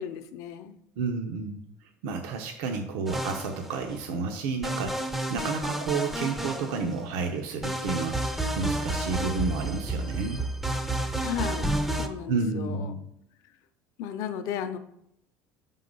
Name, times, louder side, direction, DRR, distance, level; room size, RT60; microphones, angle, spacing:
voice 1, 0.0-0.8 11.2-11.7 12.0-12.9 14.0-14.8, left 9 dB, 55° left, 9 dB, 0.5 m, -34 dB
voice 2, 1.0-1.6 2.0-10.4 12.3-13.0, right 4 dB, 85° right, 4 dB, 0.7 m, -31 dB
sound 1, 3.1-3.9 4.6-7.1 7.6-12.1, right 1 dB, 5° right, 0.4 m, -30 dB
6.0 x 3.7 x 5.3 m, 0.76 s
cardioid pair, 170°, 7 cm